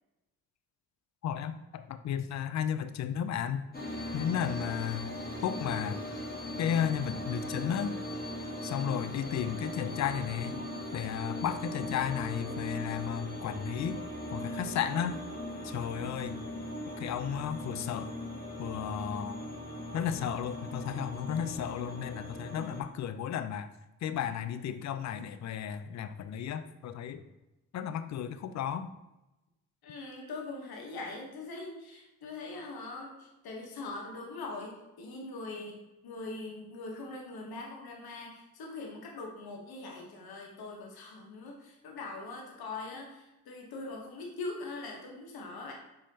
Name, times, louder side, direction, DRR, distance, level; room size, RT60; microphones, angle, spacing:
voice 1, 1.2-3.6 4.1-5.1 5.4-6.0 6.6-8.0 8.6-10.6 10.9-14.0 14.3-15.2 15.6-16.4 17.0-18.1 18.6-19.4 19.9-23.7 24.0-27.2 27.7-28.9, left 9 dB, 45° left, 11 dB, 0.4 m, -34 dB
sound 1, 3.7-22.8, left 1 dB, 25° left, 1.2 m, -39 dB
voice 2, 29.8-35.8 36.0-45.7, left 3 dB, 70° left, 0 dB, 1.1 m, -42 dB
5.3 x 3.6 x 2.8 m, 0.98 s
hypercardioid pair, 45°, 39 cm